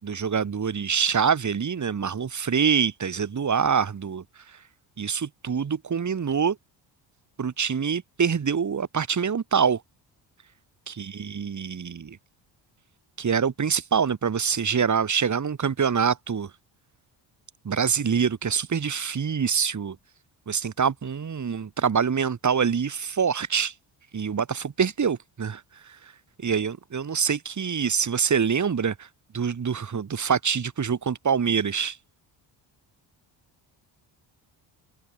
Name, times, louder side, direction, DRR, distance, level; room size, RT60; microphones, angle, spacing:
voice 1, 0.0-4.6 5.0-6.6 7.4-9.8 10.9-12.2 13.2-16.5 17.6-20.0 20.5-23.7 24.1-26.1 26.4-29.1 29.3-32.0, right 6 dB, 40° right, 7.5 m, -25 dB
open air
cardioid pair, 100°, 45 cm